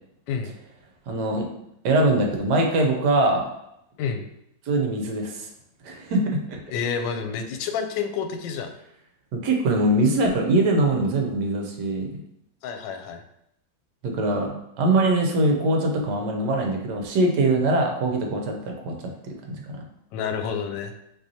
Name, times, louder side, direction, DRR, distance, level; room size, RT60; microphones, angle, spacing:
voice 1, 1.1-1.5 1.8-3.4 4.7-5.5 5.8-6.2 6.5-6.6 9.3-12.2 14.0-14.5 14.8-18.9 19.3-19.8, right 2 dB, 65° right, 2 dB, 1.3 m, -22 dB
voice 2, 6.7-8.7 12.6-13.2 20.1-21.0, left 6 dB, 75° left, 6 dB, 1.2 m, -29 dB
5.6 x 3.1 x 2.8 m, 0.80 s
omnidirectional pair, 2.1 m